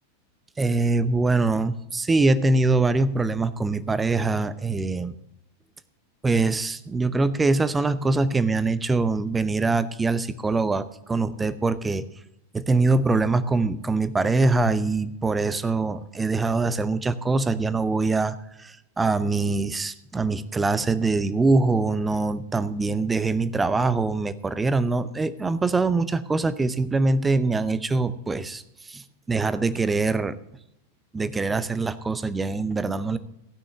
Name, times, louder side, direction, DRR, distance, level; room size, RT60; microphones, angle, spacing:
voice 1, 0.6-5.1 6.2-12.0 12.5-30.4 31.1-33.2, right 3 dB, 10° right, 15 dB, 0.7 m, -23 dB
16.5 x 6.2 x 6.4 m, 0.81 s
figure-of-eight pair, 90°, 0 cm